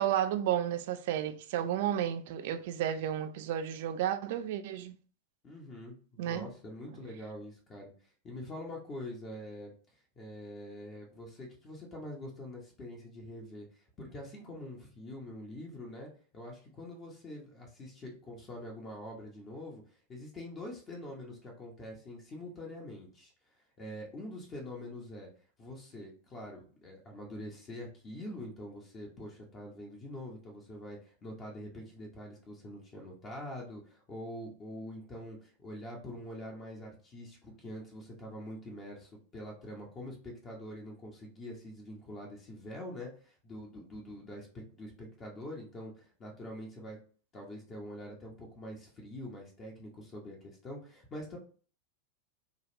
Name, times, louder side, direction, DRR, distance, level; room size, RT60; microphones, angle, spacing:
voice 1, 0.0-5.0 6.2-6.5, right 10 dB, 50° right, 0.4 m, -32 dB
voice 2, 5.4-7.9 8.2-9.7 10.2-13.7 14.0-19.8 20.1-23.3 23.8-25.3 25.6-47.0 47.3-51.4, left 1 dB, 25° left, 1.0 m, -45 dB
3.9 x 2.4 x 2.9 m
figure-of-eight pair, 90°, 0 cm